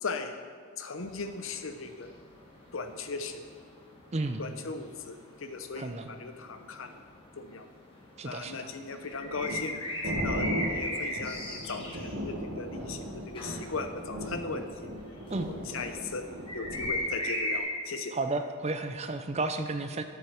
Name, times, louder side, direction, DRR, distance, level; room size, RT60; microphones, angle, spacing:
voice 1, 0.0-0.3 0.8-2.1 2.7-3.4 4.4-6.9 7.4-7.6 8.2-14.9 15.5-16.2 16.5-18.1, left 4 dB, 65° left, 8 dB, 0.8 m, -38 dB
sound 1, 1.0-16.0 16.3-17.6, left 1 dB, 25° left, 1.7 m, -37 dB
voice 2, 4.1-4.5 5.8-6.1 8.2-8.7 15.3-15.5 18.1-20.0, right 2 dB, 30° right, 7 dB, 0.6 m, -32 dB
sound 2, 9.0-17.0, equal, 70° right, 2.0 m, -37 dB
8.1 x 7.2 x 6.5 m, 2.1 s
head